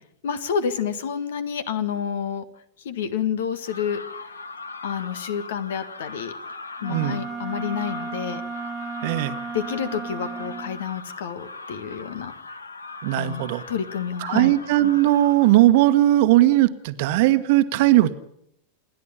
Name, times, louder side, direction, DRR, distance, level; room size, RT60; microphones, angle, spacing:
voice 1, 0.2-2.4 2.8-4.0 4.8-6.3 6.8-8.4 9.5-12.5 13.1-14.5, left 7 dB, 60° left, 13 dB, 1.7 m, -29 dB
sound 1, 3.6-15.5, left 3 dB, 75° left, 1.4 m, -39 dB
Wind instrument woodwind instrument, 6.8-10.8, right 5 dB, 15° right, 0.8 m, -34 dB
voice 2, 9.0-9.3 13.0-13.6 14.2-18.1, right 15 dB, 50° right, 12 dB, 1.3 m, -18 dB
28.5 x 11.0 x 9.9 m, 0.76 s
figure-of-eight pair, 90°, 0 cm